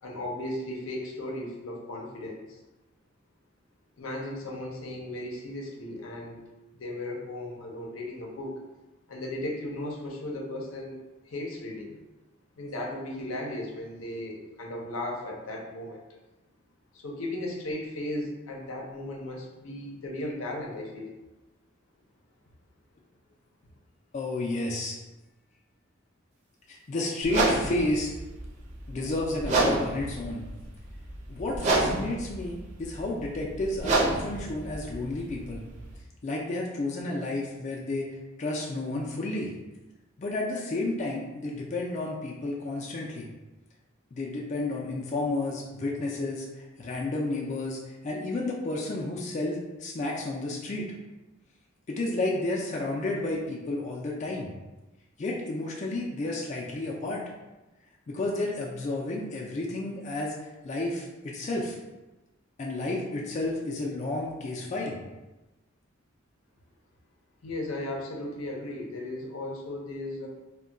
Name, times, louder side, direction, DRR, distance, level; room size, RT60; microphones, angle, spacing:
voice 1, 0.0-2.6 4.0-6.4 6.7-8.6 9.1-11.0 11.2-12.0 12.6-16.0 16.9-21.1 67.4-70.3, left 1 dB, 85° left, 0 dB, 0.6 m, -36 dB
voice 2, 24.1-25.0 26.7-28.1 28.9-30.4 31.3-35.6 36.2-39.5 40.2-43.3 44.1-50.9 51.9-54.5 55.2-57.2 58.1-61.8 62.6-65.0, left 2 dB, 35° left, -2 dB, 0.3 m, -31 dB
sound 1, 27.2-36.0, right 2 dB, 35° right, 0.6 m, -30 dB
2.2 x 2.2 x 3.7 m, 1.1 s
head